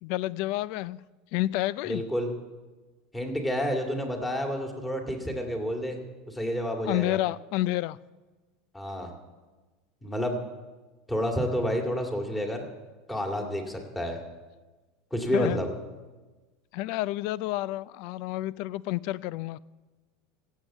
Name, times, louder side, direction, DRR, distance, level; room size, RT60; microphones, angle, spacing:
voice 1, 0.0-1.0 1.3-2.0 6.9-8.0 15.3-15.6 16.7-19.6, left 16 dB, 60° left, 20 dB, 0.4 m, -29 dB
voice 2, 1.9-2.3 3.1-6.0 6.3-7.2 8.7-9.1 10.0-10.4 11.1-12.7 13.1-14.2 15.1-15.7, equal, 10° left, 2 dB, 2.2 m, -29 dB
16.0 x 8.1 x 7.3 m, 1.2 s
supercardioid pair, 135°, 0 cm